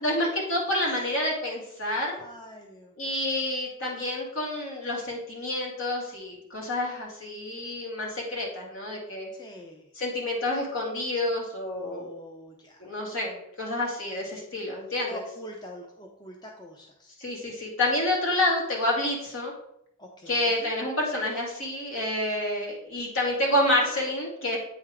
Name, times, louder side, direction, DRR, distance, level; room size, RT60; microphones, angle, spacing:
voice 1, 0.0-2.1 3.0-9.3 10.0-12.1 12.8-15.2 17.2-19.5 20.3-24.6, left 1 dB, 60° left, -2 dB, 2.2 m, -28 dB
voice 2, 2.2-2.9 9.4-9.8 11.8-12.8 15.1-17.2 20.0-20.7, equal, 20° left, 0 dB, 0.7 m, -44 dB
8.7 x 3.6 x 4.8 m, 0.76 s
head